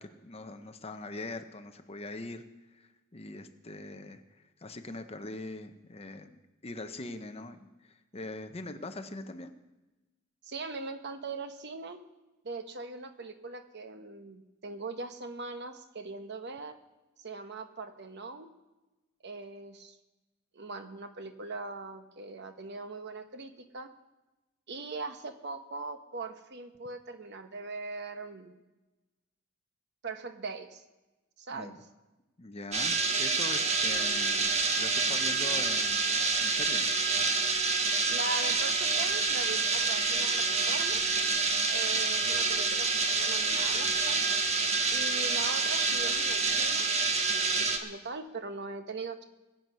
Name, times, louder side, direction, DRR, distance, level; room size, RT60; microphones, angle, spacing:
voice 1, 0.0-2.4 2.7-4.2 4.6-9.5 31.5-31.8 32.4-34.4 34.8-36.9, left 2 dB, 30° left, 8 dB, 0.9 m, -42 dB
voice 2, 10.4-12.0 12.4-16.8 17.2-18.5 19.2-20.0 20.5-23.9 24.7-28.6 30.0-30.8 31.4-31.8 38.1-41.0 41.7-44.2 44.9-46.9 47.3-49.2, right 3 dB, 55° right, 8 dB, 1.0 m, -40 dB
sound 1, 32.7-47.8, right 4 dB, 35° right, 1.1 m, -27 dB
20.5 x 7.9 x 5.6 m, 1.1 s
head